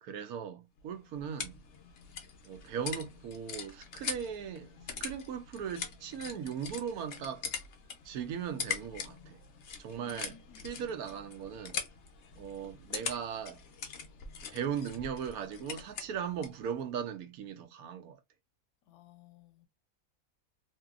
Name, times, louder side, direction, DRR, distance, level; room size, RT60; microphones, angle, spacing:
voice 1, 0.0-1.6 2.4-7.5 8.0-9.4 9.8-10.4 10.6-11.8 12.4-13.6 14.5-18.2, right 8 dB, 85° right, 1.1 m, -38 dB
sound 1, 0.8-16.6, left 6 dB, 60° left, 0.8 m, -43 dB
voice 2, 9.9-10.9 18.9-19.7, left 9 dB, 90° left, 1.1 m, -58 dB
2.8 x 2.7 x 2.3 m
omnidirectional pair, 1.5 m